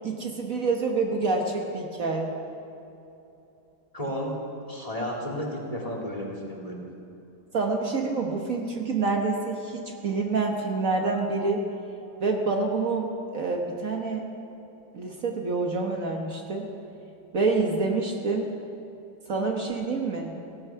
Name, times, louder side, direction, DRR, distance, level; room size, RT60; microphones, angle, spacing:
voice 1, 0.0-2.3 7.5-11.6 12.2-14.2 14.9-16.7 17.3-18.5 19.3-20.3, right 3 dB, 55° right, 1 dB, 1.6 m, -27 dB
voice 2, 3.9-4.3 4.7-6.8, equal, 20° left, -1 dB, 2.5 m, -32 dB
16.5 x 15.5 x 5.7 m, 2.9 s
omnidirectional pair, 1.8 m